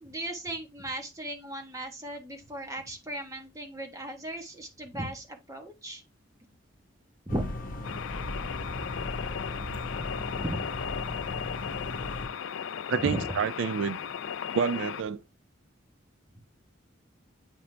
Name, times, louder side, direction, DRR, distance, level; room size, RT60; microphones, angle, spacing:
voice 1, 0.0-6.0 7.3-7.5 9.4-9.5 10.3-10.6 13.0-13.3, right 1 dB, 15° right, 1.2 m, -36 dB
sound 1, 7.3-12.3, left 1 dB, 45° left, 1.1 m, -37 dB
sound 2, 7.8-15.0, left 8 dB, 80° left, 0.4 m, -36 dB
voice 2, 12.9-14.0 14.5-15.2, right 6 dB, 70° right, 0.3 m, -28 dB
9.0 x 3.8 x 3.3 m
head